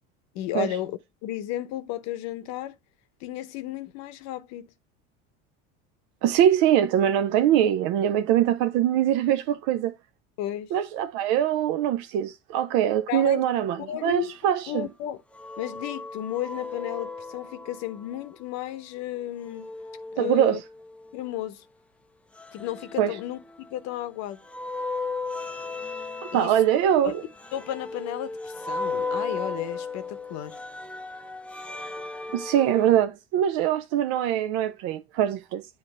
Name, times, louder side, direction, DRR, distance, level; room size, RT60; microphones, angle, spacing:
voice 1, 0.3-2.8 3.2-4.7 10.4-10.7 13.1-13.5 13.8-14.3 14.7-15.2 15.6-19.7 20.1-20.6 21.1-21.6 22.5-24.4 26.3-26.6 27.0-27.1 27.5-30.6, left 13 dB, 65° left, 0.8 m, -33 dB
voice 2, 6.2-9.9 10.7-14.9 20.2-20.6 23.0-23.2 26.3-27.2 32.3-35.7, right 10 dB, 70° right, 0.6 m, -23 dB
sound 1, 15.3-18.3 19.4-21.2 22.4-24.0 24.4-33.0, left 3 dB, 5° left, 0.4 m, -36 dB
8.0 x 2.7 x 5.3 m
supercardioid pair, 100°, 29 cm